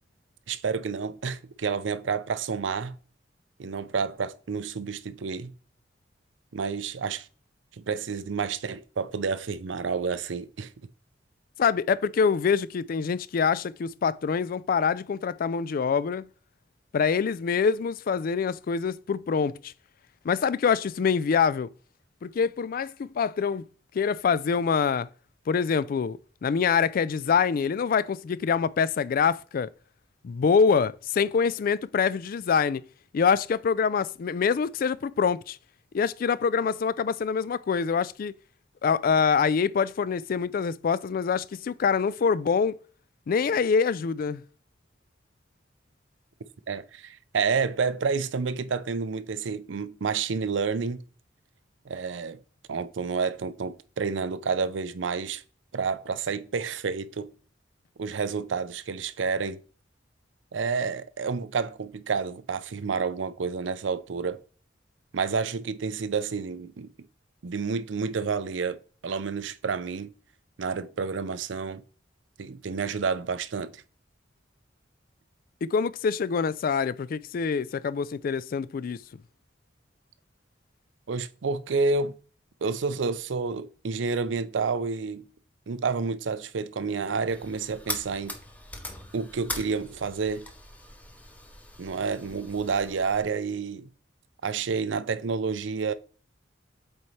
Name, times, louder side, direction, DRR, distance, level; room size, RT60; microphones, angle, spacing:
voice 1, 0.5-3.0 3.6-5.5 6.5-7.3 7.8-10.7 46.7-51.0 51.9-52.4 52.7-55.4 55.7-57.3 58.0-59.6 60.5-64.4 65.1-67.1 67.4-70.1 70.6-71.8 72.4-73.8 81.1-82.1 82.6-85.2 85.7-88.4 89.1-90.5 91.8-93.9 94.4-95.9, right 5 dB, 80° right, 0.5 m, -29 dB
voice 2, 11.6-16.2 16.9-19.7 20.2-21.7 22.2-23.6 23.9-25.1 25.5-29.7 30.2-32.8 33.1-35.6 35.9-38.3 38.8-42.8 43.3-44.4 75.6-79.0, left 6 dB, 50° left, 0.3 m, -25 dB
sound 1, 87.3-93.2, left 1 dB, 10° left, 0.8 m, -41 dB
8.0 x 4.2 x 3.2 m
head